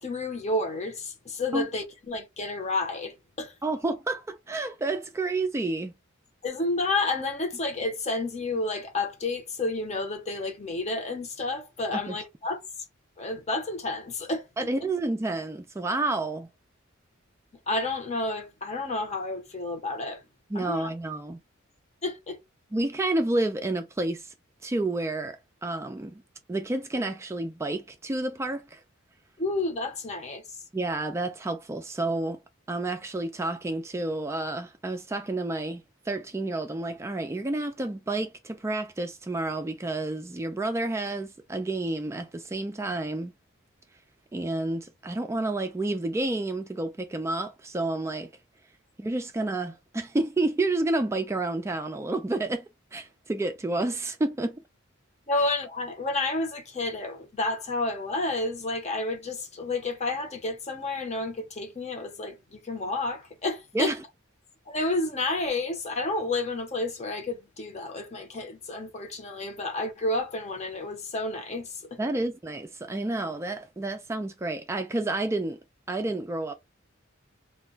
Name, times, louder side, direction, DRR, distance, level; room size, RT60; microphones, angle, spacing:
voice 1, 0.0-3.5 6.4-12.6 13.2-14.7 17.7-20.2 20.5-20.9 22.0-22.4 29.4-30.4 55.3-63.9 64.7-72.2, left 2 dB, 35° left, 0.8 m, -30 dB
voice 2, 3.6-5.9 11.9-12.2 14.6-16.5 20.5-21.4 22.7-24.3 24.6-26.2 26.5-28.8 30.7-32.4 32.7-43.3 44.3-48.3 49.0-52.7 52.9-54.6 63.7-64.0 72.0-75.6 75.9-76.5, right 2 dB, 15° right, 0.3 m, -30 dB
2.2 x 2.2 x 3.8 m
head